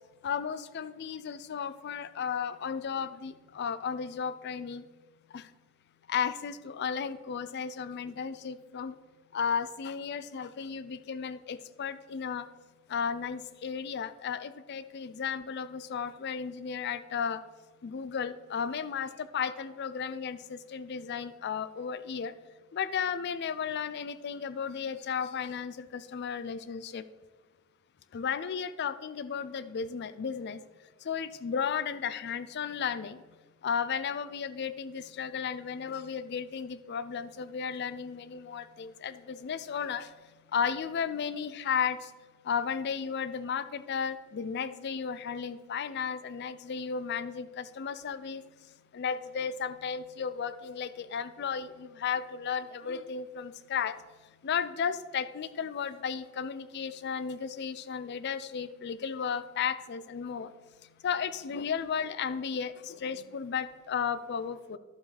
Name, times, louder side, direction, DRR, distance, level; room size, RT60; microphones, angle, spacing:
voice 1, 0.2-4.9 5.3-5.5 6.1-9.0 9.3-12.5 12.9-17.4 17.8-22.3 22.7-27.0 28.1-30.6 31.0-33.2 33.6-42.1 42.4-48.4 48.9-64.8, left 6 dB, 50° left, 14 dB, 0.4 m, -34 dB
11.5 x 7.4 x 3.3 m, 1.4 s
head